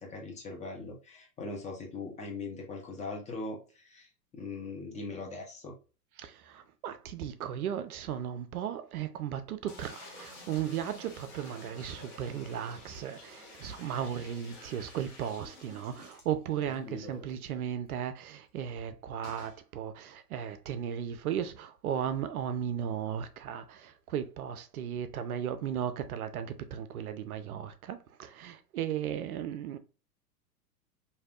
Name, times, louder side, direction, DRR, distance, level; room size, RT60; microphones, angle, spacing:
voice 1, 0.0-5.7 16.7-17.3, left 3 dB, 15° left, 0.7 m, -41 dB
voice 2, 6.2-29.8, right 9 dB, 65° right, 0.5 m, -36 dB
sound 1, 9.7-16.8 17.2-17.3 17.5-17.6 19.2-19.6, left 2 dB, 40° left, 1.3 m, -50 dB
3.3 x 2.6 x 2.4 m
figure-of-eight pair, 100°, 48 cm